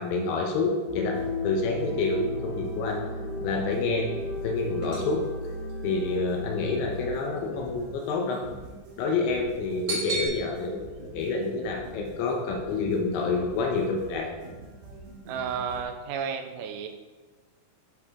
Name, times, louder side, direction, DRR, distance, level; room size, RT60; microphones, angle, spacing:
voice 1, 0.0-3.0 3.4-4.1 4.4-5.2 5.8-8.4 9.0-14.4, left 3 dB, 80° left, 1 dB, 2.9 m, -28 dB
sound 1, 0.9-7.1, left 2 dB, 60° left, 2.3 m, -34 dB
sound 2, 1.2-15.8, right 3 dB, 65° right, 3.3 m, -46 dB
sound 3, 4.2-10.3, right 2 dB, 50° right, 2.0 m, -38 dB
voice 2, 15.3-16.9, right 6 dB, 90° right, 5 dB, 3.1 m, -32 dB
10.5 x 4.8 x 3.6 m, 1.3 s
omnidirectional pair, 5.5 m